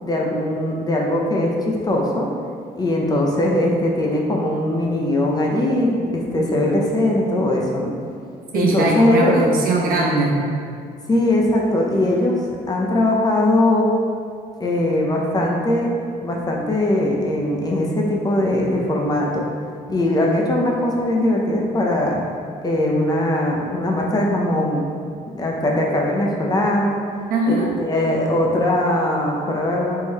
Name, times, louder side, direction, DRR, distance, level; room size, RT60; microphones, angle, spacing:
voice 1, 0.0-2.3 2.8-7.9 8.5-9.3 11.1-13.9 14.6-15.9 16.2-19.4 19.9-22.2 22.6-24.8 25.4-27.0 27.4-30.0, left 1 dB, 25° left, -1 dB, 0.6 m, -20 dB
voice 2, 8.5-10.4 27.3-27.7, right 2 dB, 60° right, -2 dB, 0.9 m, -20 dB
3.8 x 3.0 x 4.0 m, 2.3 s
cardioid pair, 110°, 17 cm